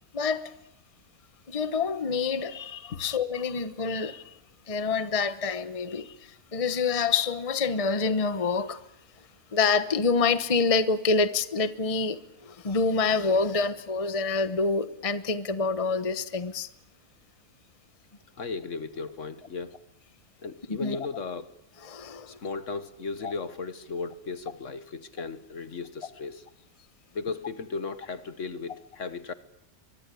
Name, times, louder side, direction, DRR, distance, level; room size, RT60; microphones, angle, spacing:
voice 1, 0.1-0.5 1.5-4.3 4.7-8.8 9.5-16.7 20.7-21.0 21.8-22.4 23.2-23.3, left 4 dB, 25° left, 1.1 m, -27 dB
voice 2, 18.4-19.8 20.4-21.5 22.3-26.5 27.1-29.3, left 4 dB, 55° left, 1.5 m, -36 dB
24.5 x 23.5 x 8.5 m
omnidirectional pair, 1.6 m